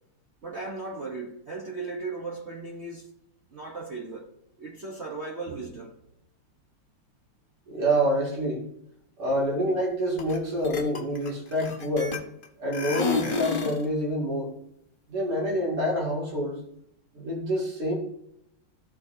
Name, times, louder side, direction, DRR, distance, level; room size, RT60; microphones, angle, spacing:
voice 1, 0.4-3.1 3.5-4.3 4.6-6.0, right 3 dB, 50° right, 0.8 m, -36 dB
voice 2, 7.7-8.6 9.2-12.2 12.6-14.5 15.1-16.6 17.1-18.0, equal, 85° right, 3.4 m, -27 dB
sound 1, 10.2-10.4 10.6-12.4 12.7-13.8, left 5 dB, 60° left, 0.5 m, -30 dB
14.0 x 4.9 x 2.7 m
omnidirectional pair, 2.4 m